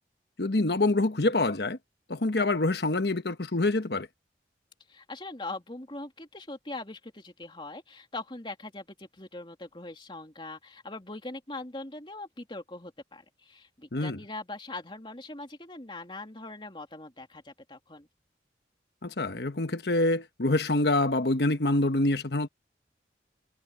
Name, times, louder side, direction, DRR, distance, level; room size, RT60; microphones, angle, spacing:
voice 1, 0.4-1.8 2.1-4.1 13.9-14.2 19.0-22.5, left 2 dB, 70° left, 1.2 m, -26 dB
voice 2, 4.9-18.1, left 2 dB, 30° left, 2.9 m, -41 dB
head